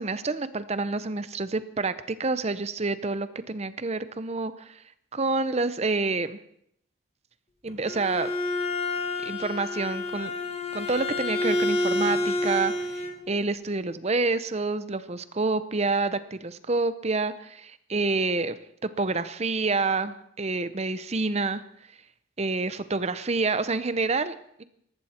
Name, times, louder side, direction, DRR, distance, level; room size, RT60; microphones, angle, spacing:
voice 1, 0.0-4.8 5.1-6.4 7.6-8.3 9.3-10.3 10.7-21.6 22.4-24.6, right 3 dB, 30° right, 13 dB, 0.7 m, -28 dB
Bowed string instrument, 7.7-13.2, left 2 dB, 30° left, 1.5 m, -28 dB
19.5 x 14.5 x 4.4 m, 0.71 s
head